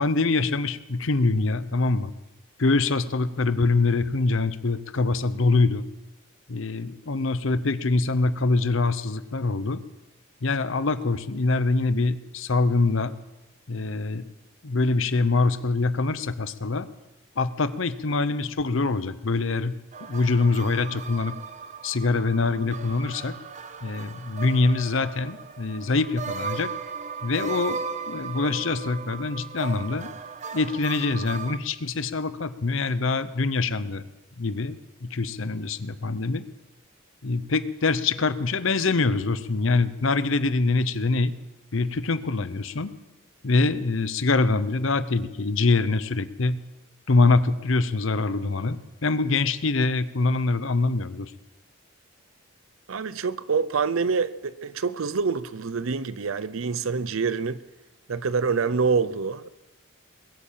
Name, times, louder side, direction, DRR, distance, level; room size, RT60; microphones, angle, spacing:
voice 1, 0.0-2.1 2.6-5.9 6.5-9.8 10.4-13.1 13.7-14.2 14.6-16.9 17.4-19.7 20.0-21.3 21.8-23.3 23.8-26.7 27.2-27.8 28.1-30.1 30.5-34.1 34.4-34.7 35.0-36.4 37.2-41.3 41.7-42.9 43.4-46.6 47.1-51.3, left 3 dB, 65° left, 0.8 m, -24 dB
sound 1, 19.9-31.6, right 5 dB, 35° right, 0.7 m, -37 dB
voice 2, 52.9-57.6 58.1-59.5, right 5 dB, 75° right, 0.6 m, -26 dB
21.5 x 8.5 x 7.5 m
head